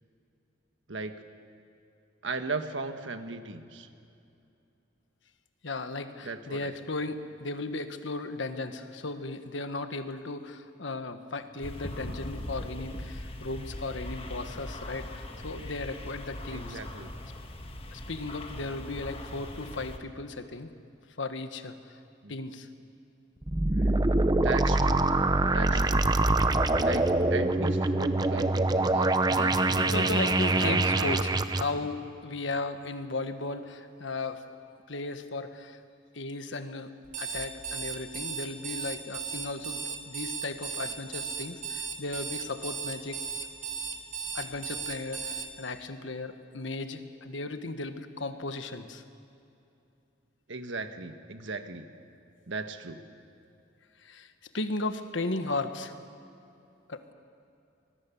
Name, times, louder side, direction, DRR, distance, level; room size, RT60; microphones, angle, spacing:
voice 1, 2.2-3.9 6.2-6.7 16.5-17.1 22.2-22.4 23.7-24.0 24.4-25.1 25.5-26.0 26.7-30.1 30.6-31.2 31.8-31.9 50.5-51.9 52.5-53.0, right 3 dB, 80° right, 8 dB, 1.5 m, -37 dB
voice 2, 5.6-16.8 17.9-20.7 21.2-21.7 22.3-22.7 29.8-34.4 34.9-35.8 36.1-43.2 44.3-49.0 54.0-55.9 56.9-57.1, left 3 dB, 80° left, 8 dB, 1.4 m, -36 dB
sound 1, 11.6-20.0, left 1 dB, 30° left, 1.4 m, -40 dB
sound 2, 23.4-31.6, right 2 dB, 20° right, 0.7 m, -24 dB
Alarm, 37.0-45.5, right 6 dB, 40° right, 2.4 m, -36 dB
25.5 x 21.0 x 7.1 m, 2.7 s
head